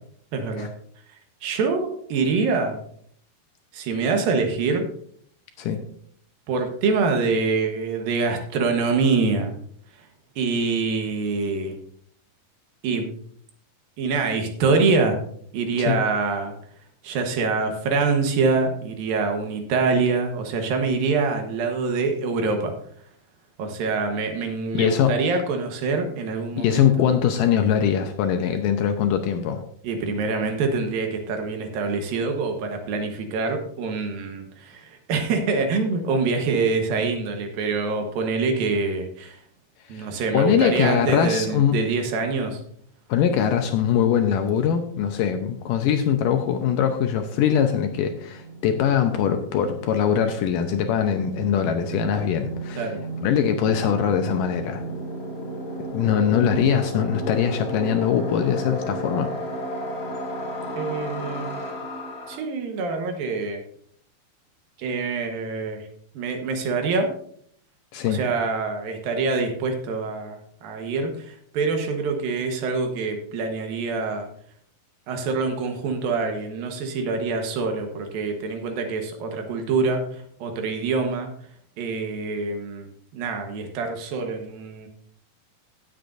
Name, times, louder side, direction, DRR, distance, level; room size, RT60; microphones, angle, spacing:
voice 1, 0.3-0.7 1.4-2.8 3.7-4.8 6.5-9.5 10.4-11.8 12.8-13.2 14.0-15.2 15.5-16.5 17.0-22.7 23.6-27.1 29.8-39.4 39.9-42.6 52.8-53.0 60.8-61.6 62.3-63.6 64.8-65.9 66.2-67.1 68.0-74.3 75.1-81.3 81.8-82.9 83.1-84.9, right 4 dB, 70° right, 5 dB, 2.9 m, -25 dB
voice 2, 24.7-25.2 26.6-29.6 39.9-40.1 40.3-41.8 43.1-52.9 53.2-54.8 55.9-59.3 67.9-68.2, left 8 dB, 75° left, 6 dB, 2.1 m, -22 dB
sound 1, 47.4-62.4, right 1 dB, 25° left, 2.6 m, -34 dB
16.5 x 7.8 x 2.6 m, 0.63 s
omnidirectional pair, 4.3 m